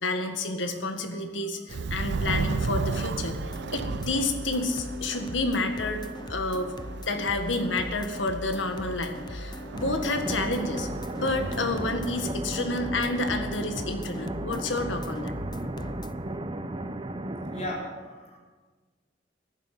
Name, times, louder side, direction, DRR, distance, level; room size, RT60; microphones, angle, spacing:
voice 1, 0.0-3.4 3.7-6.7 7.1-10.9 11.2-15.3, left 2 dB, 80° left, 6 dB, 1.9 m, -29 dB
voice 2, 0.6-1.0 1.4-1.5 17.5-18.4, left 1 dB, 40° left, -2 dB, 4.4 m, -38 dB
Subway metro underground, 1.7-12.3, right 4 dB, 65° right, 0.5 m, -35 dB
sound 1, 3.3-16.1, left 1 dB, 25° left, 0.6 m, -40 dB
sound 2, 9.7-17.7, right 1 dB, 30° right, 0.8 m, -35 dB
15.0 x 11.5 x 8.4 m, 1.4 s
head